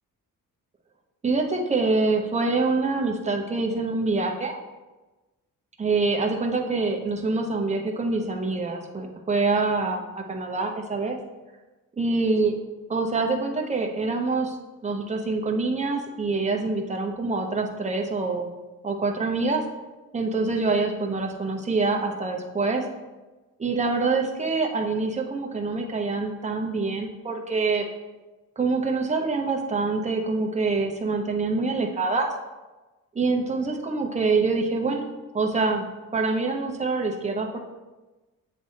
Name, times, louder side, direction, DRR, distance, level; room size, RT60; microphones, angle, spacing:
voice 1, 1.2-4.6 5.8-11.2 12.0-12.5 12.9-14.6 14.8-18.5 18.8-19.6 20.1-22.8 23.6-27.8 28.6-32.3 33.1-35.1 35.3-35.8 36.1-37.6, right 3 dB, 20° right, 1 dB, 0.8 m, -25 dB
7.7 x 3.4 x 4.1 m, 1.1 s
cardioid pair, 115°, 36 cm